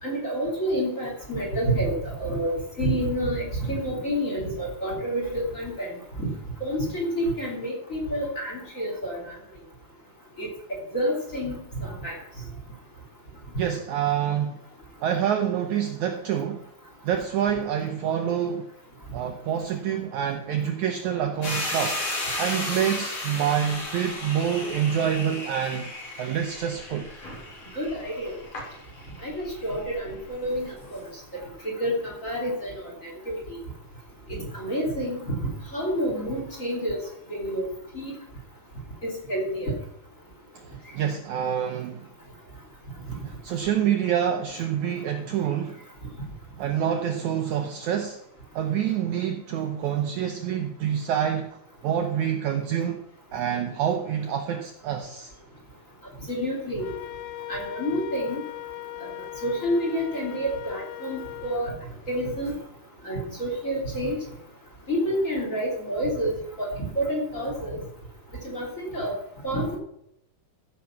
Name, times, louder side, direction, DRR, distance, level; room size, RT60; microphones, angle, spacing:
voice 1, 0.0-6.3 6.6-9.4 10.4-12.1 27.7-28.3 29.2-31.0 31.6-32.7 33.0-33.6 34.3-35.4 35.7-37.0 37.3-37.7 37.9-38.1 39.0-39.7 56.3-56.9 57.5-58.4 59.4-61.7 62.1-62.5 63.0-64.2 64.9-67.8 68.4-69.1 69.4-69.8, equal, 25° left, 0 dB, 2.8 m, -28 dB
voice 2, 13.6-14.6 15.0-16.7 17.0-18.7 19.1-22.0 22.4-25.9 26.2-27.1 40.6-42.1 43.4-45.8 46.6-48.2 48.5-53.0 53.3-55.3, right 9 dB, 70° right, 5 dB, 1.9 m, -27 dB
sound 1, 21.4-31.1, left 1 dB, 40° left, 4.8 m, -34 dB
Wind instrument woodwind instrument, 56.8-61.6, left 17 dB, 75° left, 1.8 m, -39 dB
14.5 x 7.3 x 5.9 m, 0.79 s
omnidirectional pair, 4.2 m